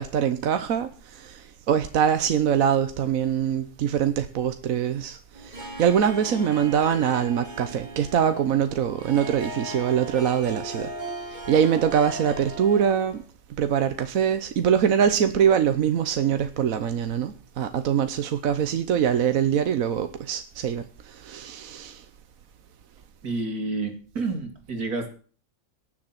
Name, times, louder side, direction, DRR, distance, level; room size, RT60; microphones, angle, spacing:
voice 1, 0.0-10.9 11.5-13.2 13.6-22.0, right 8 dB, 70° right, 1.3 m, -23 dB
Harp, 5.3-13.2, right 1 dB, 30° right, 4.1 m, -38 dB
voice 2, 23.2-25.1, right 3 dB, 85° right, 3.0 m, -29 dB
18.0 x 7.2 x 5.8 m
omnidirectional pair, 1.5 m